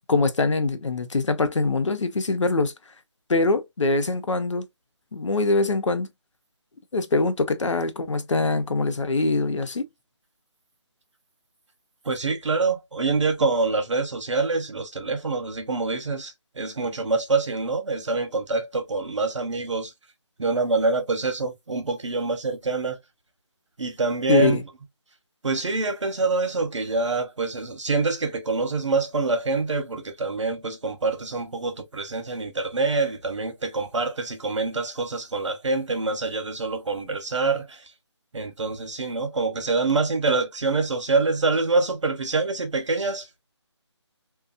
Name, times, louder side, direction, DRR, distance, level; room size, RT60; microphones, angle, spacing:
voice 1, 0.1-2.7 3.3-4.7 5.1-6.1 6.9-9.9 24.3-24.6, left 3 dB, 85° left, 0.7 m, -23 dB
voice 2, 12.0-19.9 20.4-23.0 23.8-24.6 25.4-37.8 38.3-43.4, right 3 dB, 80° right, 1.0 m, -25 dB
2.8 x 2.3 x 2.4 m
figure-of-eight pair, 170°, 15 cm